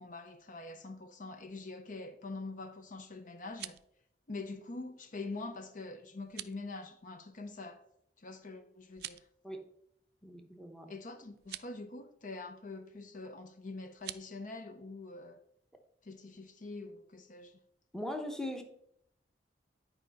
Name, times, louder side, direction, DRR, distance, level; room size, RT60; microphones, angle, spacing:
voice 1, 0.0-3.8 4.3-7.8 8.2-9.2 10.9-15.4 16.0-17.6, left 3 dB, 50° left, 0.7 m, -44 dB
sound 1, 3.3-3.9 6.2-6.6 8.9-9.3 11.4-11.7 13.9-14.3, right 14 dB, 65° right, 0.4 m, -45 dB
voice 2, 10.2-10.9 17.9-18.6, left 1 dB, 5° left, 0.9 m, -40 dB
9.9 x 5.0 x 4.1 m
head